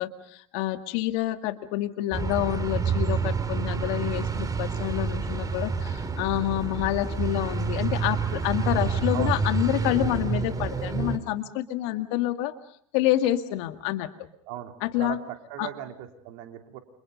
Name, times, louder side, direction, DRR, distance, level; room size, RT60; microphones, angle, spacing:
voice 1, 0.0-12.5 12.9-14.1 14.8-15.2 15.6-15.7, left 14 dB, 65° left, 8 dB, 2.0 m, -28 dB
sound 1, 2.1-11.2, right 5 dB, 20° right, 3.1 m, -28 dB
voice 2, 14.5-16.8, right 12 dB, 65° right, 4 dB, 3.7 m, -38 dB
30.0 x 27.0 x 5.4 m, 0.64 s
hypercardioid pair, 85°, 16 cm